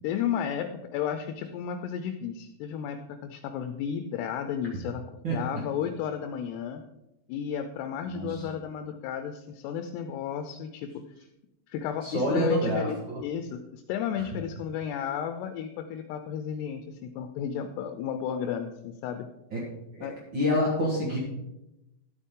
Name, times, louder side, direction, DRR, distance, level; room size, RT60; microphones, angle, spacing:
voice 1, 0.0-5.1 5.3-6.8 7.3-11.0 11.7-19.3 20.0-20.2, left 8 dB, 85° left, 8 dB, 2.6 m, -33 dB
voice 2, 12.0-13.2 19.5-19.6 19.9-21.2, equal, 80° right, -3 dB, 1.0 m, -27 dB
12.0 x 8.3 x 3.7 m, 0.92 s
omnidirectional pair, 4.9 m